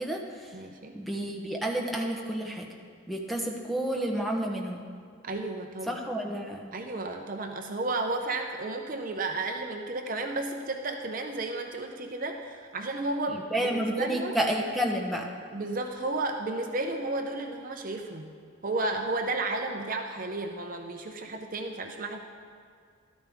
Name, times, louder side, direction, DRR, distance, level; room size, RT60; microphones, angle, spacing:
voice 1, 0.0-0.6 0.9-2.7 3.1-4.8 5.9-6.7 13.3-15.3, right 1 dB, ahead, 0 dB, 0.9 m, -30 dB
voice 2, 0.5-1.0 5.2-6.0 6.7-14.4 15.5-18.3 18.6-22.3, right 2 dB, 40° right, 4 dB, 0.6 m, -33 dB
13.5 x 12.5 x 3.5 m, 2.1 s
head